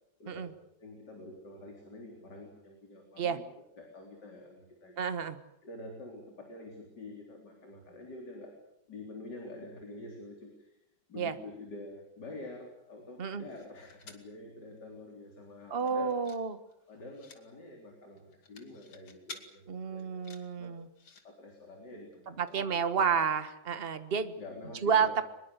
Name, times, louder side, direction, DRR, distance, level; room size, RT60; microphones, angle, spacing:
voice 1, 0.2-0.5 0.8-5.0 5.6-8.6 8.9-10.8 11.1-16.2 16.9-20.2 20.6-20.8 21.2-22.7 23.1-23.3 24.4-25.2, left 2 dB, 60° left, 1 dB, 4.5 m, -47 dB
voice 2, 5.0-5.4 11.1-11.3 13.2-13.4 15.7-16.6 19.7-20.9 22.3-24.4 24.8-25.2, right 6 dB, 35° right, 10 dB, 1.5 m, -30 dB
sound 1, 13.2-14.3 14.8-14.9 15.1-15.4 15.7-16.4 16.7-17.4 18.2-19.4 20.0-21.2 22.1-22.2 22.5-22.6, left 4 dB, 85° left, 3.2 m, -51 dB
23.5 x 21.5 x 8.2 m, 0.81 s
omnidirectional pair, 2.1 m